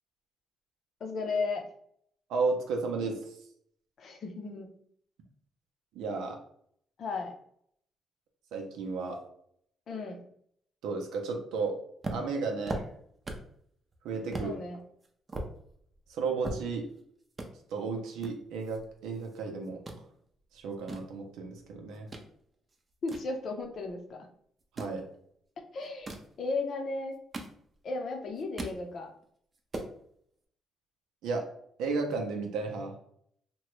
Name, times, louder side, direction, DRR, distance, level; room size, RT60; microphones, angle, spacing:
voice 1, 1.0-1.6 4.0-4.7 7.0-7.3 9.9-10.2 14.4-14.8 23.0-24.3 25.7-27.2 27.8-29.1, left 3 dB, 60° left, 3 dB, 0.6 m, -35 dB
voice 2, 2.3-3.3 5.9-6.4 8.5-9.2 10.8-11.8 12.1-12.8 14.0-14.5 16.1-16.8 17.7-19.8 20.5-22.1 24.7-25.0 31.2-31.5 31.8-32.9, right 4 dB, 90° right, 2 dB, 0.6 m, -33 dB
sound 1, 12.0-13.6 13.9-14.0 14.3-14.5 15.0-17.0 17.3-17.5 18.2-19.4 19.6-20.0 20.6-22.3 22.7-24.0 24.6-25.0 25.8-26.3 27.0-27.9 28.3-28.8 29.2-29.3 29.5-29.9, right 2 dB, 30° right, 0.5 m, -39 dB
2.9 x 2.2 x 3.0 m, 0.67 s
cardioid pair, 90°, 0 cm